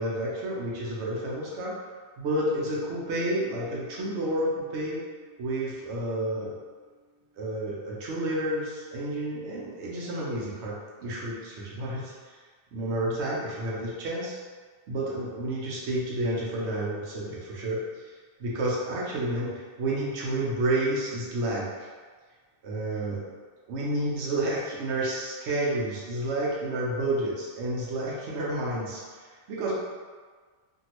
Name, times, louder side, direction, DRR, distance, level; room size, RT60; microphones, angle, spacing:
voice 1, 0.0-1.7 2.2-5.0 5.4-6.5 7.3-12.4 12.7-14.4 14.9-18.1 18.4-21.9 22.6-23.2 23.7-29.8, right 1 dB, 70° right, -5 dB, 0.9 m, -30 dB
Piano, 2.3-7.6, left 1 dB, 85° left, 1.1 m, -50 dB
3.0 x 2.6 x 2.9 m, 1.5 s
omnidirectional pair, 1.2 m